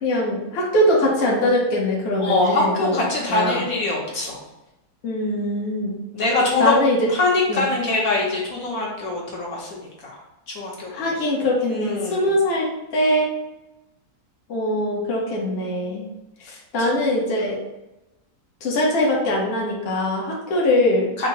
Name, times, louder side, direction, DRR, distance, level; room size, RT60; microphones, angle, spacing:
voice 1, 0.0-3.0 3.3-3.6 5.0-6.0 6.6-7.1 7.5-7.7 10.9-13.3 14.5-16.1 16.4-17.6 18.6-21.1, left 1 dB, 45° left, -3 dB, 1.0 m, -22 dB
voice 2, 2.2-4.4 6.1-6.7 7.1-10.1 10.5-11.0 11.7-12.3 16.8-16.9 21.2-21.3, left 3 dB, 65° left, -3 dB, 1.5 m, -23 dB
4.7 x 2.0 x 4.6 m, 0.96 s
omnidirectional pair, 1.6 m